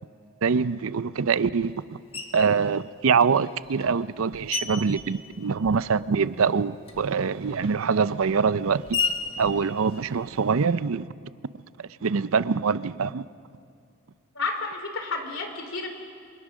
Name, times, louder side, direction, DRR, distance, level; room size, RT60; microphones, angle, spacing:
voice 1, 0.4-2.0 2.3-8.9 9.4-11.1 12.0-13.2, right 5 dB, 70° right, 0.5 m, -24 dB
Screech, 2.1-2.6 3.4-6.1 6.3-10.6, left 4 dB, 25° left, 1.7 m, -35 dB
voice 2, 14.3-15.9, left 3 dB, 60° left, 3.3 m, -31 dB
28.0 x 25.0 x 6.2 m
head